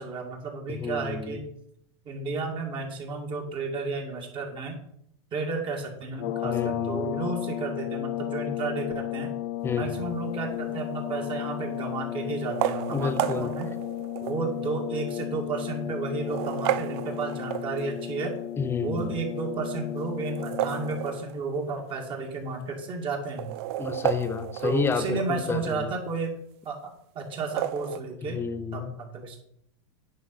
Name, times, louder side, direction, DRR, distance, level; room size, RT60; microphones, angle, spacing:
voice 1, 0.0-1.4 2.0-4.8 5.3-9.3 9.8-13.7 14.2-18.4 18.8-23.6 24.6-26.4 26.6-28.4 28.7-29.4, right 4 dB, 30° right, 1 dB, 2.1 m, -32 dB
voice 2, 0.7-1.4 6.4-7.1 9.6-10.1 12.9-13.5 18.6-19.1 23.8-25.9 28.3-29.0, left 5 dB, 15° left, 11 dB, 0.8 m, -30 dB
sound 1, 6.1-21.3, left 13 dB, 50° left, 0.7 m, -34 dB
sound 2, 10.7-11.2 12.4-14.5 15.1-15.2 16.1-18.1 20.2-21.6 21.9-22.0 22.3-22.4 23.2-25.5 27.3-28.0, right 13 dB, 55° right, 0.5 m, -32 dB
9.7 x 4.8 x 5.8 m, 0.73 s
hypercardioid pair, 125°, 16 cm